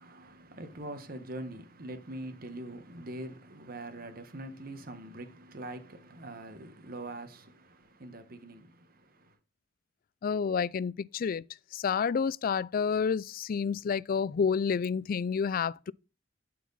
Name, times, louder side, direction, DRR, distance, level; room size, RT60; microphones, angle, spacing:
voice 1, 0.0-9.4, right 1 dB, 50° right, 1.3 m, -43 dB
voice 2, 10.2-11.4 11.7-15.9, left 6 dB, 50° left, 0.3 m, -29 dB
12.0 x 4.7 x 4.1 m
head